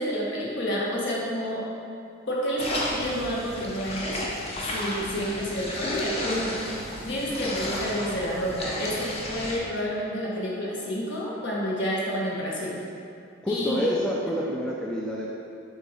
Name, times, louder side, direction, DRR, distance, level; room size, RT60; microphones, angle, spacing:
voice 1, 0.0-1.7 2.3-4.1 4.7-6.6 7.0-12.8 13.5-13.9, equal, 60° left, -5 dB, 1.5 m, -29 dB
sound 1, 2.6-9.6, left 1 dB, 30° left, 0.9 m, -33 dB
voice 2, 13.4-15.3, equal, 5° left, -4 dB, 0.5 m, -27 dB
7.2 x 3.6 x 5.5 m, 2.5 s
head